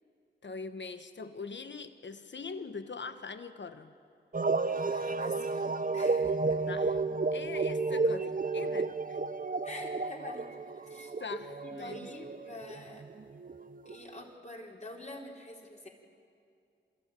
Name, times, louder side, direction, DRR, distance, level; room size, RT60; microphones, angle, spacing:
voice 1, 0.4-3.9 6.7-7.0 7.3-9.2 11.0-12.2, left 4 dB, 65° left, 10 dB, 1.2 m, -42 dB
sound 1, 4.3-14.3, right 3 dB, 45° right, 0.8 m, -32 dB
voice 2, 4.6-6.6 9.6-10.5 10.9-11.1 11.6-13.0 13.9-15.9, left 1 dB, 35° left, -1 dB, 4.1 m, -46 dB
28.0 x 14.0 x 9.1 m, 2.5 s
cardioid pair, 50°, 20 cm